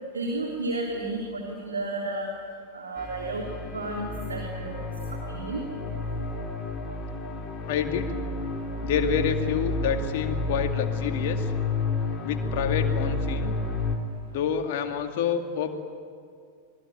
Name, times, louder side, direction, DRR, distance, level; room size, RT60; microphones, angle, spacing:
voice 1, 0.1-2.3 2.7-3.5 3.7-4.8 5.3-5.6, right 2 dB, 75° right, 0 dB, 3.5 m, -32 dB
sound 1, 3.0-14.0, left 3 dB, 20° left, 3.8 m, -30 dB
voice 2, 7.7-8.1 8.8-11.5 12.2-13.6 14.3-15.7, left 8 dB, 50° left, 5 dB, 2.3 m, -28 dB
26.0 x 21.0 x 9.2 m, 2.3 s
figure-of-eight pair, 90°, 0 cm